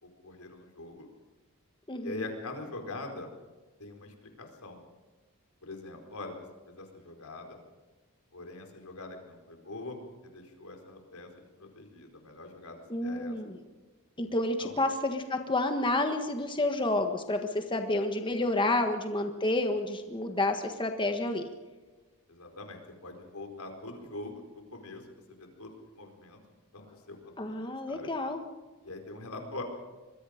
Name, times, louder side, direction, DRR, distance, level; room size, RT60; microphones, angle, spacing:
voice 1, 0.0-1.1 2.0-3.3 3.8-4.8 5.6-6.4 6.7-7.6 8.3-10.0 10.2-11.3 11.6-13.4 14.2-14.8 22.3-25.0 25.4-26.4 26.7-27.2 27.5-28.1 28.8-29.6, left 2 dB, 90° left, 4 dB, 4.5 m, -43 dB
voice 2, 1.9-2.2 12.9-13.6 14.2-21.4 27.4-28.4, left 2 dB, 20° left, 5 dB, 1.5 m, -29 dB
26.0 x 22.0 x 5.2 m, 1.2 s
head